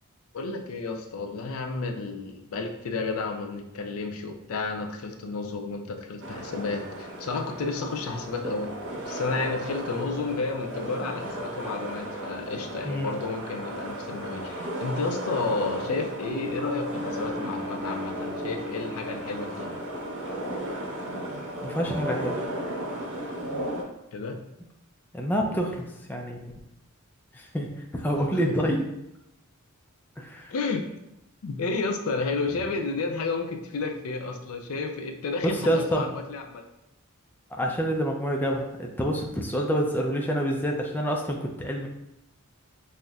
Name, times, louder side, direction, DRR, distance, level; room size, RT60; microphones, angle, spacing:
voice 1, 0.3-8.7 9.1-19.7 24.1-24.4 28.4-28.6 30.5-30.8 31.4-36.6, left 3 dB, 75° left, 4 dB, 0.4 m, -31 dB
sound 1, 6.2-23.8, right 1 dB, 60° right, 0.7 m, -35 dB
voice 2, 12.8-13.1 21.6-22.4 25.1-26.4 27.3-27.7 27.9-28.8 30.2-30.5 35.4-36.1 37.5-41.9, equal, 10° left, 0 dB, 0.3 m, -27 dB
sound 2, 16.3-21.8, left 3 dB, 35° right, 0.9 m, -39 dB
5.3 x 2.1 x 2.3 m, 0.86 s
head